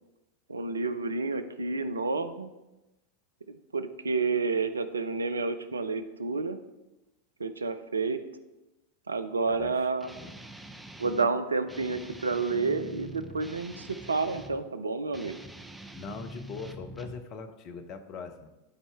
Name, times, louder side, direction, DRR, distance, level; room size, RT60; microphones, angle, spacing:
voice 1, 0.5-2.5 3.5-6.6 7.4-8.2 9.1-10.1 11.0-15.4, right 4 dB, 75° right, 11 dB, 0.5 m, -30 dB
voice 2, 9.5-10.3 15.9-18.5, left 4 dB, 35° left, 8 dB, 0.8 m, -42 dB
Guitar, 10.0-11.3 11.7-14.6 15.1-17.2, right 1 dB, 5° right, 0.6 m, -45 dB
12.0 x 4.2 x 3.5 m, 0.99 s
figure-of-eight pair, 90°, 0 cm